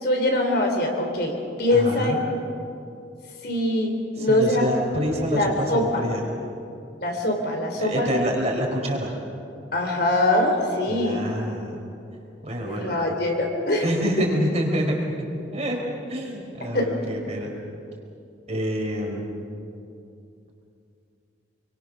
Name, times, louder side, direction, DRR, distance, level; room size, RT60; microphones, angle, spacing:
voice 1, 0.0-2.2 3.4-4.6 5.3-6.0 7.0-8.2 9.7-11.2 12.6-13.9 16.7-16.9, left 1 dB, 55° left, 2 dB, 3.7 m, -23 dB
voice 2, 1.7-2.2 4.2-6.2 7.8-9.2 10.9-11.8 12.4-13.0 13.8-15.8 16.1-17.5 18.5-19.3, equal, 35° right, 0 dB, 4.3 m, -27 dB
27.5 x 24.0 x 6.3 m, 2.6 s
head